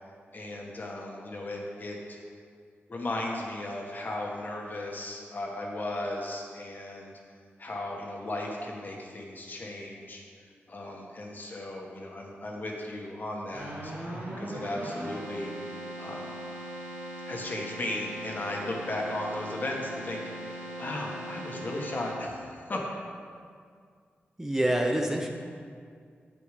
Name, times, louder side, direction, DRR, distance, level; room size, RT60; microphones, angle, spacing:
voice 1, 0.3-2.2 2.9-7.1 7.6-10.2 10.7-15.5 15.7-16.3 17.3-22.9, left 1 dB, 45° left, -1 dB, 1.5 m, -36 dB
Keyboard (musical), 13.5-22.5, right 1 dB, 90° right, 2.5 m, -40 dB
voice 2, 24.4-25.3, right 1 dB, 10° right, 2 dB, 0.7 m, -26 dB
8.3 x 6.9 x 5.0 m, 2.1 s
wide cardioid pair, 85°, 4 cm